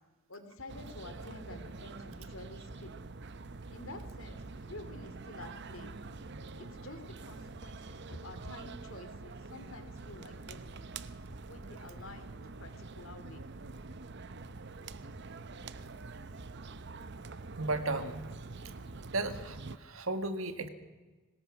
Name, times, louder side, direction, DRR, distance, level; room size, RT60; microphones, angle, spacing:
voice 1, 0.3-2.9 3.7-4.4 4.7-5.9 6.6-10.9 11.5-13.4, left 2 dB, 65° left, 8 dB, 3.0 m, -49 dB
sound 1, 0.7-19.8, right 3 dB, 55° right, 0.8 m, -46 dB
voice 2, 17.6-18.2 19.1-20.7, right 2 dB, 70° right, 9 dB, 1.7 m, -34 dB
24.5 x 19.5 x 6.1 m, 1.3 s
head